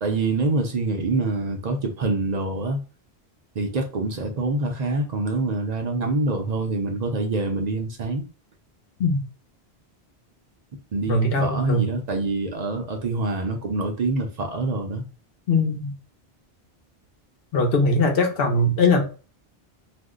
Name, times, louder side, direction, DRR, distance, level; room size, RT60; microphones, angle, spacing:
voice 1, 0.0-2.8 3.6-8.2 10.9-15.0, right 3 dB, 50° right, 0.5 m, -25 dB
voice 2, 11.1-11.8 15.5-15.9 17.5-19.0, left 2 dB, 65° left, 0.9 m, -20 dB
2.5 x 2.1 x 3.5 m
omnidirectional pair, 1.1 m